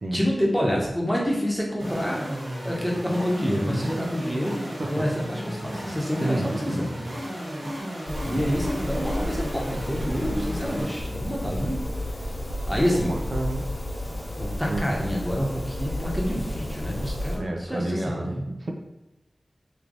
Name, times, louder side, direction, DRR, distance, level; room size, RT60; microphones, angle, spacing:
voice 1, 0.1-2.3 2.6-7.0 7.3-7.5 8.2-11.8 12.7-13.2 14.4-18.4, equal, ahead, -3 dB, 1.0 m, -27 dB
sound 1, 1.8-10.9, equal, 90° right, 1.3 m, -34 dB
voice 2, 6.2-6.6 12.9-13.6 14.7-14.9 17.3-18.7, right 2 dB, 70° right, 1 dB, 0.5 m, -30 dB
sound 2, 8.1-17.4, left 1 dB, 70° left, 1.0 m, -32 dB
3.3 x 2.9 x 3.9 m, 0.97 s
wide cardioid pair, 80°, 0 cm